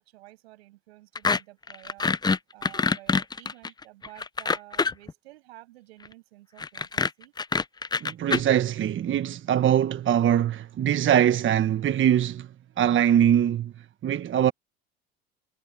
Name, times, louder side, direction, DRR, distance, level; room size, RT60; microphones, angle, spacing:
voice 1, 0.0-2.1 2.5-7.3, right 18 dB, 85° right, 6.5 m, -51 dB
sound 1, 1.2-1.4 1.7-5.1 6.6-8.4, left 4 dB, 15° left, 0.6 m, -25 dB
voice 2, 8.0-12.5 12.8-13.7 14.0-14.5, right 10 dB, 40° right, 1.4 m, -22 dB
hypercardioid pair, 85°, 31 cm